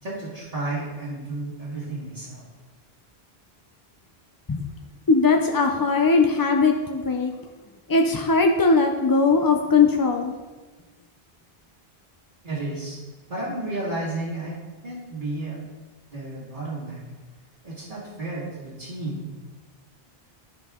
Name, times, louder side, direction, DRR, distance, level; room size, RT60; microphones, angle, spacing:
voice 1, 0.0-2.5 12.4-13.0 13.3-14.6 14.8-15.6 16.1-17.0 17.6-19.3, right 2 dB, 50° right, -10 dB, 2.0 m, -32 dB
voice 2, 5.1-7.3 7.9-10.3, left 4 dB, 35° left, 3 dB, 0.3 m, -19 dB
12.0 x 5.4 x 3.6 m, 1.3 s
omnidirectional pair, 1.0 m